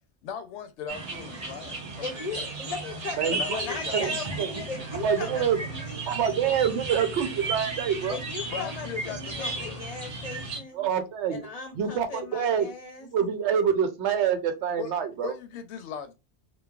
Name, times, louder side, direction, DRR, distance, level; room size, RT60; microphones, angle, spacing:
voice 1, 0.2-2.5 3.3-4.3 8.5-9.9 14.8-16.1, left 7 dB, 90° left, 0.9 m, -39 dB
sound 1, 0.9-10.6, right 3 dB, 40° right, 0.8 m, -34 dB
voice 2, 2.0-6.1 8.1-10.9 11.3-13.1, left 4 dB, 40° left, 0.6 m, -38 dB
voice 3, 3.2-3.6 3.9-4.5 5.0-5.6 6.0-8.2 10.7-11.4 11.7-12.7 13.0-15.3, right 8 dB, 90° right, 0.9 m, -26 dB
3.0 x 2.2 x 2.3 m
omnidirectional pair, 1.1 m